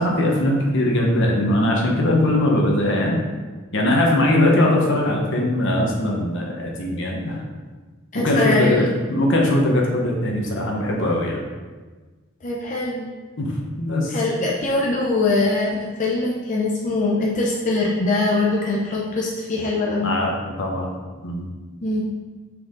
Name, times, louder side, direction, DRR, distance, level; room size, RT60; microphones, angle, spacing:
voice 1, 0.0-3.2 3.7-7.4 8.1-11.4 13.4-14.2 20.0-20.9 21.2-21.5, left 1 dB, 65° left, -1 dB, 1.2 m, -20 dB
voice 2, 8.1-8.9 12.4-13.1 14.1-20.1 21.8-22.0, left 2 dB, 40° left, -3 dB, 0.7 m, -22 dB
5.9 x 4.7 x 3.9 m, 1.3 s
head